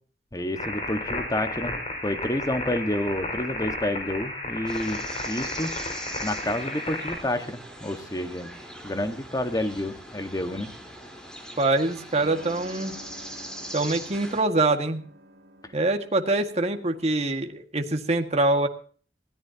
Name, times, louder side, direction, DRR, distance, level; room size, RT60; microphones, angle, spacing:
voice 1, 0.3-1.8 2.0-5.7 6.2-8.5 8.8-10.7, left 1 dB, 20° left, 7 dB, 1.6 m, -29 dB
sound 1, 0.5-7.2, left 2 dB, 35° left, 5.4 m, -33 dB
sound 2, 4.7-14.4, equal, 5° left, 4.1 m, -41 dB
voice 2, 11.6-13.0 13.7-15.0 15.7-18.7, right 2 dB, 40° right, 5 dB, 1.9 m, -24 dB
sound 3, 12.2-17.0, equal, 70° right, 3.5 m, -47 dB
21.0 x 17.0 x 2.9 m, 0.43 s
head